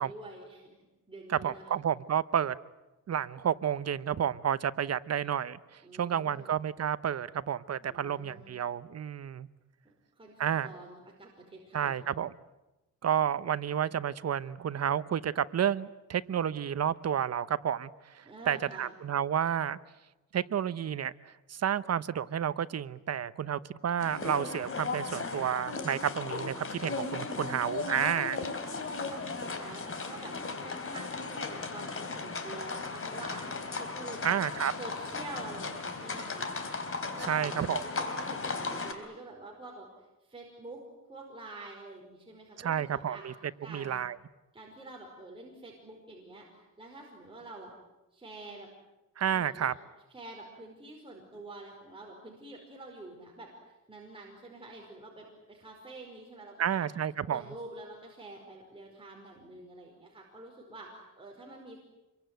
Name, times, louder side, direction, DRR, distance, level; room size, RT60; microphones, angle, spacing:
voice 1, 0.0-1.8 5.8-6.5 7.8-8.6 9.8-12.0 18.2-18.9 28.6-34.3 34.8-36.5 37.1-39.9 40.2-40.8 41.1-43.2 43.6-44.0 44.5-47.7 48.1-48.7 49.3-49.7 50.1-56.9 57.3-61.8, right 2 dB, 15° right, -1 dB, 5.1 m, -47 dB
voice 2, 1.3-2.5 3.1-9.5 10.4-10.7 11.7-12.3 13.0-19.8 20.3-28.4 34.2-34.7 37.3-37.8 42.6-43.3 43.7-44.2 49.2-49.7 56.6-57.4, right 9 dB, 50° right, 15 dB, 0.9 m, -31 dB
sound 1, 24.0-38.9, left 4 dB, 40° left, 3.5 m, -36 dB
27.0 x 23.0 x 9.3 m, 1.0 s
cardioid pair, 130°, 33 cm